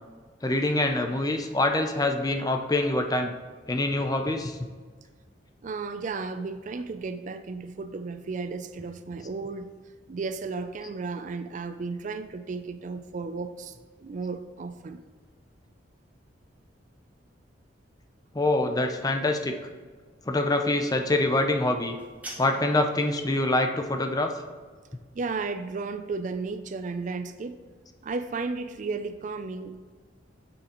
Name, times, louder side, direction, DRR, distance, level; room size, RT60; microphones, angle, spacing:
voice 1, 0.4-3.3 3.7-4.6 8.8-8.9 9.2-9.3 18.3-19.6 20.3-21.9 22.4-24.3, left 2 dB, 20° left, 5 dB, 0.6 m, -25 dB
voice 2, 5.6-9.7 10.1-15.0 25.1-27.6 28.0-29.8, right 4 dB, 45° right, 10 dB, 0.4 m, -34 dB
sound 1, 21.8-22.8, right 2 dB, 10° right, 1.5 m, -43 dB
8.4 x 7.1 x 3.0 m, 1.5 s
head